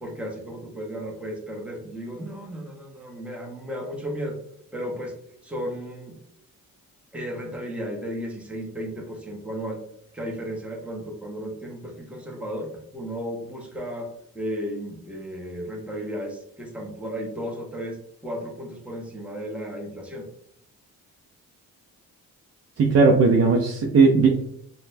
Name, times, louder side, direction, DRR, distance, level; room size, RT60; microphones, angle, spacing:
voice 1, 0.0-4.4 4.7-5.1 5.4-6.2 7.1-9.8 10.1-14.1 14.3-20.3, equal, 5° right, 0 dB, 0.8 m, -34 dB
voice 2, 22.8-24.5, right 4 dB, 45° right, 0 dB, 0.5 m, -18 dB
4.0 x 2.1 x 2.5 m, 0.70 s
cardioid pair, 85°, 36 cm